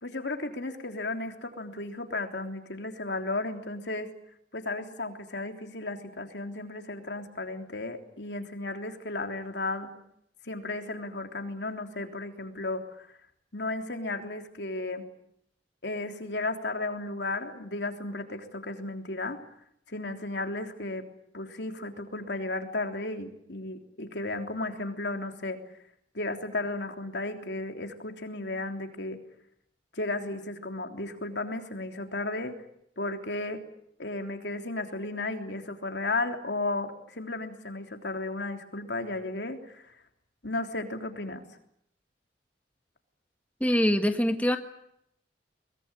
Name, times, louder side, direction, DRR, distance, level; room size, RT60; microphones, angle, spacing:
voice 1, 0.0-4.1 4.5-9.9 10.4-13.1 13.5-15.0 15.8-19.4 19.9-21.1 21.3-25.6 26.1-29.2 29.9-32.6 33.0-33.6 34.0-40.0 40.4-41.4, left 2 dB, 70° left, 5 dB, 3.4 m, -34 dB
voice 2, 43.6-44.6, equal, 10° left, 6 dB, 1.6 m, -24 dB
23.0 x 21.5 x 9.9 m, 0.75 s
head